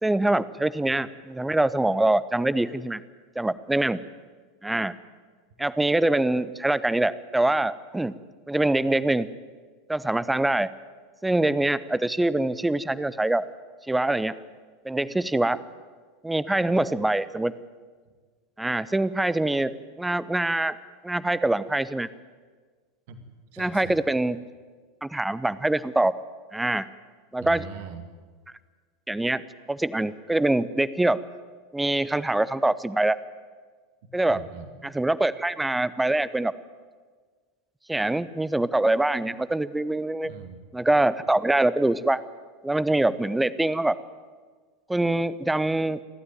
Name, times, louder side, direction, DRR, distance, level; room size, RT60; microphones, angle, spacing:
voice 1, 0.0-3.0 3.4-4.0 4.6-4.9 5.6-8.1 8.5-9.3 9.9-10.7 11.2-13.5 13.9-14.3 14.8-15.6 16.2-17.5 18.6-20.8 21.0-22.1 23.6-24.4 25.0-26.1 26.5-26.9 27.3-27.6 29.1-29.4 29.7-31.2 31.7-33.2 34.1-34.4 34.8-36.5 37.9-40.3 40.7-42.2 42.6-44.0 44.9-46.0, right 2 dB, 5° right, 17 dB, 0.8 m, -24 dB
voice 2, 23.5-24.0 27.4-28.1 34.0-34.8 39.2-39.3 40.2-40.6, right 7 dB, 55° right, 7 dB, 2.4 m, -41 dB
29.5 x 12.5 x 9.3 m, 1.5 s
figure-of-eight pair, 80°, 0 cm